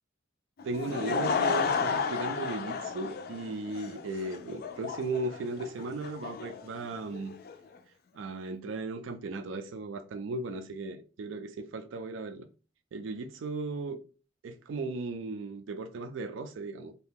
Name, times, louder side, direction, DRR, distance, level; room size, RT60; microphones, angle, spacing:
Laughter / Crowd, 0.6-7.5, left 5 dB, 50° left, 0.4 m, -33 dB
voice 1, 0.6-7.3 8.1-12.5 12.9-14.0 14.4-16.9, right 3 dB, 75° right, 0.4 m, -36 dB
2.7 x 2.2 x 3.4 m
head